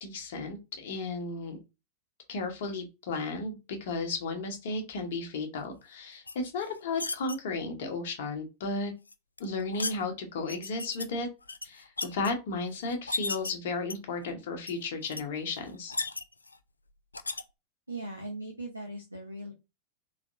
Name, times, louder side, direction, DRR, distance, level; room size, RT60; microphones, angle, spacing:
voice 1, 0.0-1.6 2.3-8.9 9.4-11.3 11.6-15.9, left 3 dB, 55° left, 4 dB, 1.1 m, -34 dB
sound 1, 6.3-7.4 9.1-10.0 10.5-11.1 11.4-12.3 12.9-13.5 13.9-14.3 14.7-14.8 15.0-15.2 15.6-16.6 17.1-17.4, left 3 dB, 80° left, 0.3 m, -35 dB
voice 2, 17.9-19.5, right 1 dB, 85° right, 1 dB, 0.8 m, -39 dB
4.1 x 3.4 x 2.6 m, 0.25 s
figure-of-eight pair, 90°, 0 cm